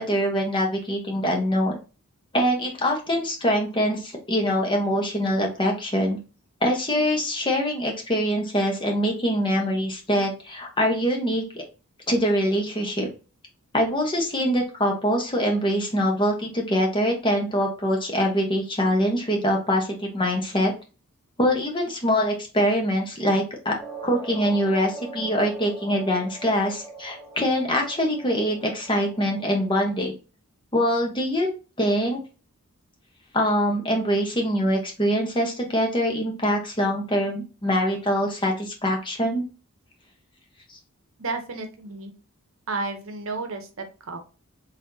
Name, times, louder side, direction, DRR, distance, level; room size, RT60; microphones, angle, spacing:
voice 1, 0.0-1.8 2.3-6.2 6.6-11.6 12.1-13.1 13.7-20.7 21.4-23.7 24.0-30.1 30.7-31.5 31.8-32.2 33.3-39.4 40.7-40.8, equal, 20° left, 1 dB, 1.0 m, -24 dB
sound 1, 23.8-30.0, right 3 dB, 15° right, 1.1 m, -42 dB
voice 2, 41.2-42.1 42.7-44.2, right 3 dB, 65° right, 6 dB, 0.8 m, -32 dB
4.2 x 3.5 x 2.7 m, 0.32 s
head